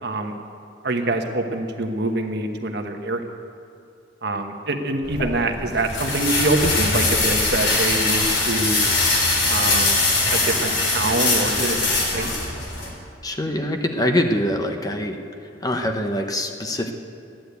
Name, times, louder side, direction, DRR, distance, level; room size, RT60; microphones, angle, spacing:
voice 1, 0.0-0.3 0.8-3.2 4.2-8.8 9.5-10.0 10.3-11.9 12.1-12.3, right 2 dB, 60° right, 5 dB, 1.2 m, -25 dB
sound 1, 5.0-12.9, left 2 dB, 75° left, 4.1 m, -22 dB
voice 2, 13.2-15.2 15.6-16.9, left 1 dB, 20° left, 4 dB, 0.9 m, -24 dB
14.0 x 10.5 x 8.2 m, 2.5 s
head